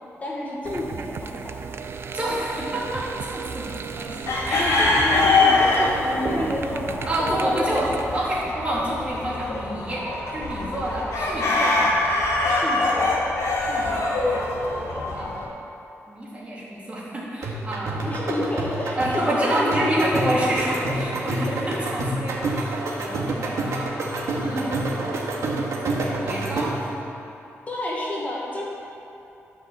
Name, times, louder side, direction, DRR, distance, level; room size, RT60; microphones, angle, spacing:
voice 1, 0.2-1.7 4.5-6.9 7.2-8.0 12.4-13.1 17.9-20.6 21.3-21.9 24.3-24.8 27.7-28.6, left 1 dB, 30° left, -3 dB, 1.4 m, -29 dB
sound 1, 0.6-8.5, right 5 dB, 50° right, 0.5 m, -34 dB
voice 2, 2.1-3.0 3.3-4.2 4.4-4.9 7.1-7.9 8.1-12.0 13.6-14.5 15.1-15.5 16.1-17.9 18.9-23.9 24.4-25.0 26.2-26.8, right 1 dB, 25° right, -6 dB, 2.6 m, -28 dB
sound 2, 4.2-15.5, left 2 dB, 85° left, 2.5 m, -24 dB
sound 3, 17.4-26.9, right 2 dB, 75° right, 1.6 m, -28 dB
12.0 x 5.7 x 7.3 m, 2.9 s
wide cardioid pair, 150°, 5 cm